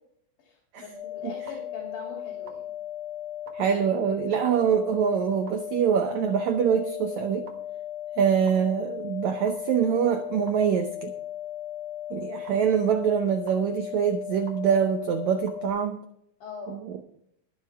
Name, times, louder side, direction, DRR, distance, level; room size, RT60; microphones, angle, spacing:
voice 1, 0.4-2.7 16.4-16.8, left 5 dB, 70° left, -1 dB, 4.4 m, -42 dB
sound 1, 0.9-15.7, left 11 dB, 55° right, 1.6 m, -37 dB
voice 2, 3.5-7.5 8.2-11.1 12.1-16.0 16.7-17.0, right 8 dB, 90° right, 7 dB, 1.6 m, -24 dB
22.0 x 7.6 x 3.5 m, 0.74 s
omnidirectional pair, 4.4 m